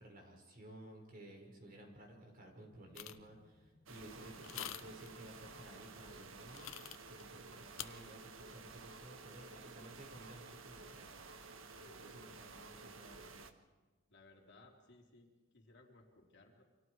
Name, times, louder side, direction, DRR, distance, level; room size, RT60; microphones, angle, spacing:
voice 1, 0.0-6.7 7.1-11.2 12.0-13.4, right 1 dB, 45° right, 1 dB, 5.2 m, -55 dB
sound 1, 2.1-13.5, left 1 dB, 20° right, 3.3 m, -72 dB
sound 2, 3.0-3.3 4.4-5.1 6.5-7.2 7.8-7.9, left 11 dB, 90° left, 0.9 m, -46 dB
sound 3, 3.9-13.5, right 4 dB, 85° right, 1.6 m, -53 dB
voice 2, 4.0-4.4 11.7-12.5 14.1-16.6, left 2 dB, 60° left, 0 dB, 3.7 m, -62 dB
29.5 x 25.5 x 4.8 m, 1.2 s
head